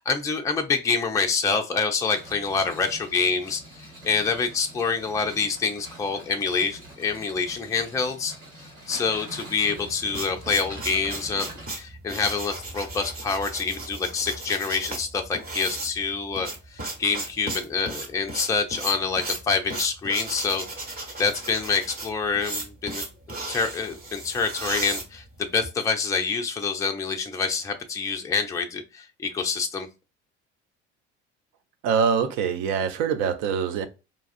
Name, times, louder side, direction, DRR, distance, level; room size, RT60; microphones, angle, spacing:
voice 1, 0.0-8.3 8.6-11.5 11.8-20.6 21.2-23.0 23.5-29.9, left 5 dB, 10° left, 0.4 m, -26 dB
sound 1, 2.1-11.7, right 1 dB, 70° right, 1.8 m, -45 dB
sound 2, 9.8-25.7, right 2 dB, 25° right, 1.1 m, -35 dB
voice 2, 31.8-33.9, right 6 dB, 50° right, 0.6 m, -24 dB
4.3 x 2.3 x 2.4 m
figure-of-eight pair, 60°, 35 cm